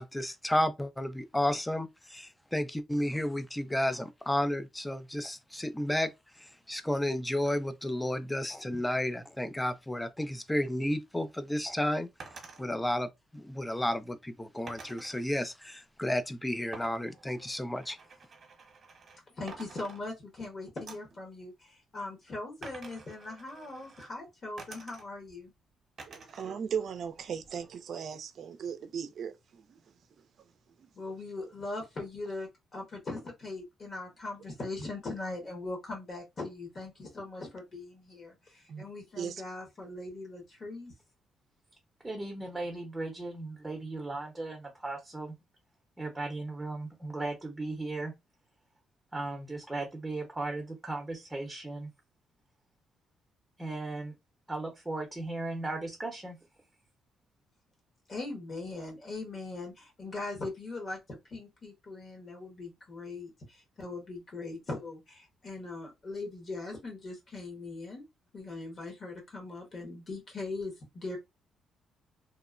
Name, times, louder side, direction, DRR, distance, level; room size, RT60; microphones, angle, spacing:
voice 1, 0.0-6.1 6.4-12.1 12.6-18.0, left 1 dB, 10° left, 0.4 m, -32 dB
sound 1, 12.2-12.6 14.7-15.2 16.7-19.2 19.5-20.4 20.9-21.2 22.6-24.1 24.6-25.3 26.0-26.5 26.9-27.7, right 4 dB, 45° right, 0.9 m, -49 dB
voice 2, 19.3-25.5 30.9-40.9 58.1-68.0 68.3-71.2, left 2 dB, 45° left, 1.2 m, -40 dB
voice 3, 26.1-30.2 30.8-30.9 31.4-31.5 38.7-38.8 39.2-39.4, right 7 dB, 60° right, 0.4 m, -38 dB
voice 4, 42.0-45.3 46.0-48.1 49.1-51.9 53.6-54.1 54.5-56.4, right 2 dB, 15° right, 0.7 m, -37 dB
2.8 x 2.0 x 2.4 m
cardioid pair, 90°, 0 cm